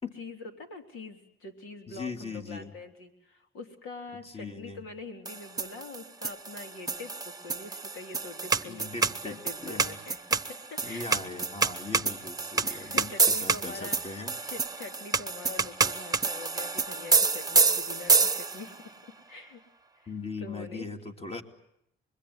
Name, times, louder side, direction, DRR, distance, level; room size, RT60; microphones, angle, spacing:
voice 1, 0.2-11.5 12.1-12.3 12.6-19.6 20.0-20.1 20.4-20.9, left 3 dB, 85° left, 5 dB, 3.6 m, -44 dB
voice 2, 1.9-2.7 4.3-4.8 8.6-10.0 10.8-14.4 20.1-21.4, left 3 dB, 30° left, 6 dB, 2.8 m, -39 dB
sound 1, 5.3-18.8, right 4 dB, 20° right, 1.0 m, -28 dB
26.0 x 22.0 x 9.8 m, 0.78 s
cardioid pair, 90°, 20 cm